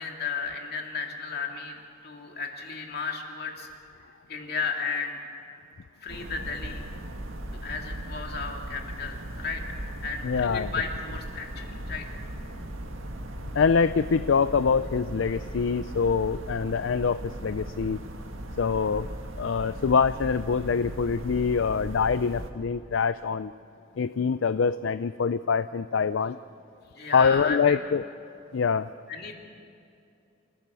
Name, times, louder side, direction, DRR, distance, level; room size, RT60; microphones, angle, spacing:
voice 1, 0.0-3.7 4.3-5.2 6.0-6.8 7.5-9.6 10.0-12.1 27.0-27.8 29.1-29.3, left 5 dB, 50° left, 2 dB, 2.7 m, -34 dB
sound 1, 6.1-22.5, right 1 dB, 80° right, 1.8 m, -38 dB
voice 2, 10.2-10.7 13.5-18.0 18.6-19.1 19.4-23.5 24.0-26.4 27.1-28.0 28.5-28.9, left 5 dB, 70° left, 14 dB, 0.4 m, -24 dB
28.0 x 15.0 x 7.0 m, 2.6 s
head